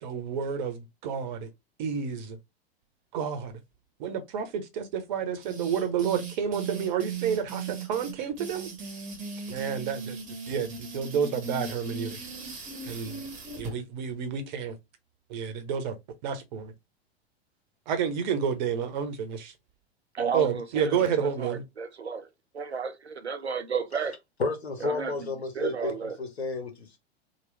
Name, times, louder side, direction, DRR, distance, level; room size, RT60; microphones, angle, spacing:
voice 1, 0.0-1.5 1.8-2.4 3.1-3.6 4.0-8.7 9.5-10.2 10.5-12.2 12.8-13.2 13.6-14.8 15.3-15.9 16.2-16.7 17.9-19.5 20.3-21.6, right 7 dB, 45° right, 0.8 m, -30 dB
sound 1, 5.4-13.7, right 4 dB, 25° right, 1.0 m, -38 dB
voice 2, 20.1-22.3 22.5-24.2 24.8-26.2, right 5 dB, 90° right, 0.5 m, -33 dB
voice 3, 24.4-25.9 26.2-27.0, left 3 dB, 75° left, 1.0 m, -31 dB
3.0 x 2.4 x 3.2 m
figure-of-eight pair, 95°, 32 cm